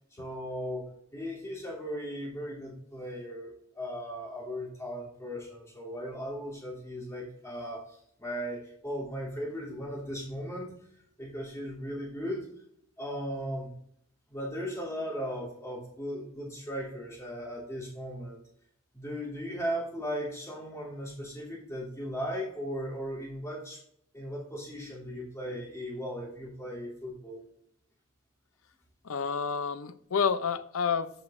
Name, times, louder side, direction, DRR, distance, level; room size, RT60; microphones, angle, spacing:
voice 1, 0.1-10.7 11.2-12.5 13.0-13.7 14.3-18.4 18.9-23.8 24.1-27.4, equal, 15° left, 3.0 m, -37 dB
voice 2, 29.1-31.1, left 6 dB, 85° left, 0.5 m, -29 dB
13.5 x 5.8 x 2.6 m
head